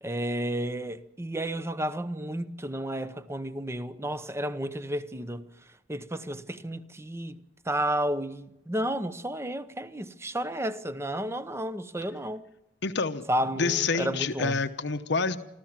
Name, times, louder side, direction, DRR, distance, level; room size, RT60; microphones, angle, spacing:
voice 1, 0.0-5.5 5.9-7.4 7.6-12.4 13.3-14.6, right 1 dB, 15° right, 0.9 m, -32 dB
voice 2, 12.8-13.2 13.6-15.4, left 4 dB, 60° left, 1.0 m, -27 dB
25.5 x 14.5 x 7.4 m
head